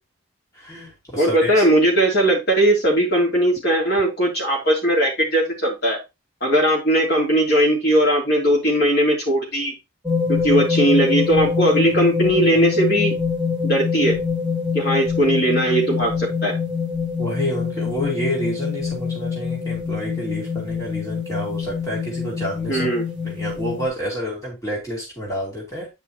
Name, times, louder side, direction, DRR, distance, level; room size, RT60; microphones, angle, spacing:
voice 1, 0.5-1.6 17.2-22.9 23.2-25.9, equal, 15° left, -4 dB, 2.7 m, -29 dB
voice 2, 1.2-6.0 6.4-9.7 10.3-13.1 13.6-14.2 14.7-16.5 22.7-23.1, right 1 dB, 50° left, -2 dB, 3.5 m, -19 dB
sound 1, 10.1-23.9, left 5 dB, 5° right, 1.7 m, -24 dB
9.1 x 5.4 x 3.1 m, 0.23 s
head